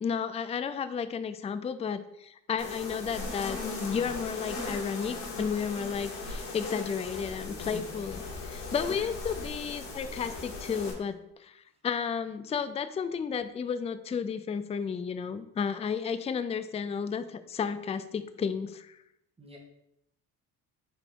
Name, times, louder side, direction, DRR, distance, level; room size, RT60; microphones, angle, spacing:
voice 1, 0.0-19.0, left 6 dB, 15° left, 12 dB, 0.3 m, -33 dB
sound 1, 2.6-10.9, left 3 dB, 80° left, 1.7 m, -38 dB
voice 2, 8.9-9.2 11.7-11.8 19.4-19.6, right 1 dB, 15° right, -1 dB, 1.8 m, -51 dB
5.0 x 4.1 x 4.5 m, 0.80 s
supercardioid pair, 80°, 40 cm